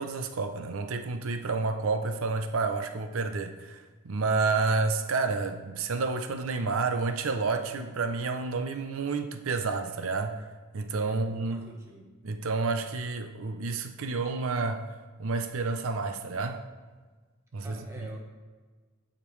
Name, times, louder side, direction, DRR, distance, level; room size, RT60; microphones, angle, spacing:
voice 1, 0.0-10.4 10.7-11.7 12.2-14.9 15.2-16.6 17.5-17.8, right 4 dB, 80° right, 0.6 m, -30 dB
voice 2, 11.0-12.1 17.6-18.2, right 1 dB, 15° right, 1.2 m, -47 dB
15.5 x 5.2 x 3.2 m
head